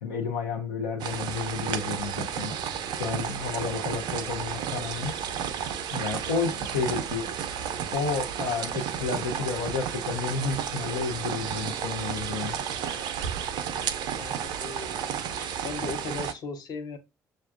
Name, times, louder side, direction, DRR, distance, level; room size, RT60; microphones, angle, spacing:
voice 1, 0.0-2.6 2.9-5.1 5.9-7.3 7.9-12.6, left 5 dB, 75° left, 0.6 m, -31 dB
sound 1, 1.0-16.3, right 8 dB, 60° right, 0.4 m, -32 dB
voice 2, 14.0-17.0, left 4 dB, 50° left, 0.8 m, -38 dB
6.3 x 2.2 x 2.3 m
figure-of-eight pair, 45°, 9 cm